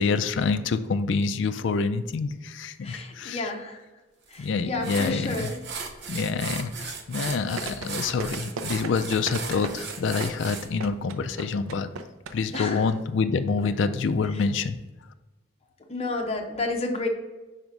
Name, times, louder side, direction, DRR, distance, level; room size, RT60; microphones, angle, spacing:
voice 1, 0.0-3.5 4.4-5.5 6.1-11.9 12.3-14.8, left 4 dB, 60° left, 9 dB, 0.3 m, -27 dB
voice 2, 2.8-3.8 4.3-5.6 12.5-12.8 15.9-17.1, left 3 dB, 30° left, 2 dB, 0.8 m, -31 dB
sound 1, 4.3-4.4 4.8-10.7, right 5 dB, 55° right, 0.7 m, -37 dB
sound 2, 7.6-12.6 12.9-13.0, right 4 dB, 90° right, 0.5 m, -35 dB
4.9 x 4.6 x 5.2 m, 1.1 s
head